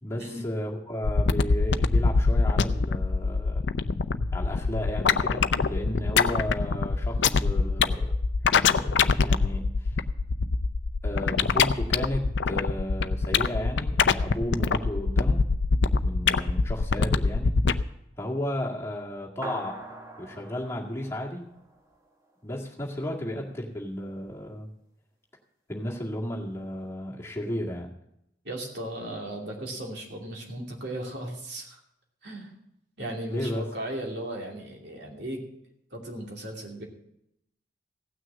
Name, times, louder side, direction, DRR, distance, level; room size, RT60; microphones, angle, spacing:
voice 1, 0.0-3.6 4.3-8.1 8.6-10.0 11.0-15.4 16.0-17.6 18.2-19.8 20.2-21.5 22.4-24.7 25.7-27.9 33.3-33.7, left 1 dB, 15° left, -3 dB, 2.0 m, -33 dB
sound 1, 1.0-17.8, left 4 dB, 70° left, 0.5 m, -24 dB
sound 2, 19.4-22.1, right 1 dB, 15° right, 1.3 m, -42 dB
voice 2, 28.4-31.8 32.2-32.5 33.0-35.4 35.9-36.9, right 1 dB, 60° right, 0 dB, 2.7 m, -36 dB
16.5 x 6.4 x 7.5 m, 0.80 s
head